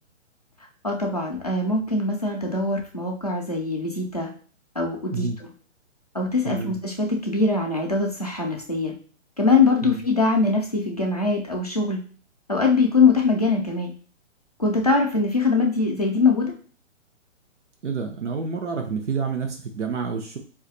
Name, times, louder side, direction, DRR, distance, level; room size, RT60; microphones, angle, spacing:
voice 1, 0.8-4.3 4.8-5.5 6.1-9.0 9.4-12.0 12.5-14.0 14.6-16.5, left 3 dB, 35° left, 0 dB, 0.4 m, -22 dB
voice 2, 17.8-20.4, right 5 dB, 65° right, 3 dB, 0.7 m, -28 dB
2.6 x 2.4 x 3.9 m, 0.42 s
hypercardioid pair, 180°, 37 cm